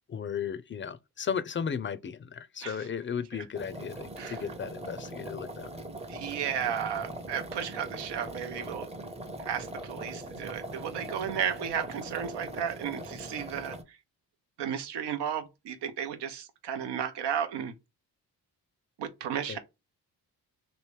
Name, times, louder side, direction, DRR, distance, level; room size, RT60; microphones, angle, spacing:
voice 1, 0.1-5.7 19.5-19.6, left 7 dB, 30° left, 0.4 m, -35 dB
sound 1, 3.5-13.8, right 1 dB, 15° right, 0.6 m, -41 dB
voice 2, 6.1-8.9 9.4-13.7 14.6-17.7 19.0-19.6, right 8 dB, 85° right, 0.6 m, -33 dB
3.0 x 2.6 x 3.2 m
cardioid pair, 60°, 40 cm